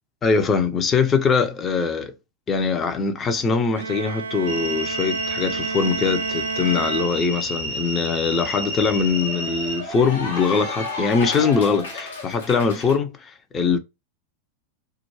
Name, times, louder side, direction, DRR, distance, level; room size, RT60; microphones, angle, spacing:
voice 1, 0.2-2.1 2.5-13.8, left 5 dB, 20° left, 0.5 m, -22 dB
Bowed string instrument, 3.7-7.8, right 4 dB, 75° right, 0.3 m, -31 dB
sound 1, 4.4-9.8, right 1 dB, 45° left, 1.2 m, -30 dB
Cheering / Applause, 7.1-7.2 7.5-13.0, left 3 dB, 65° left, 0.7 m, -34 dB
2.3 x 2.1 x 3.1 m
figure-of-eight pair, 90°, 0 cm